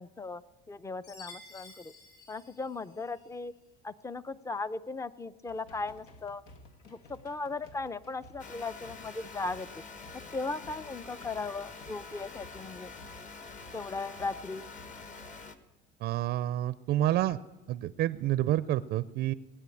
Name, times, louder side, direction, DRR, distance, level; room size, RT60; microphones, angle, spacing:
voice 1, 0.0-1.9 2.3-3.5 3.8-6.4 6.9-9.8 10.1-12.9 13.7-14.6, left 3 dB, 15° left, 15 dB, 0.5 m, -37 dB
Chime, 1.0-3.4, left 3 dB, 60° left, 7.8 m, -52 dB
sound 1, 5.5-15.3, left 1 dB, 85° left, 1.9 m, -56 dB
Very Much Distortion, 8.4-15.6, left 4 dB, 40° left, 1.4 m, -46 dB
voice 2, 16.0-17.4 17.7-19.3, right 13 dB, 55° right, 16 dB, 0.5 m, -29 dB
18.0 x 9.1 x 8.4 m, 1.1 s
cardioid pair, 110°, 20 cm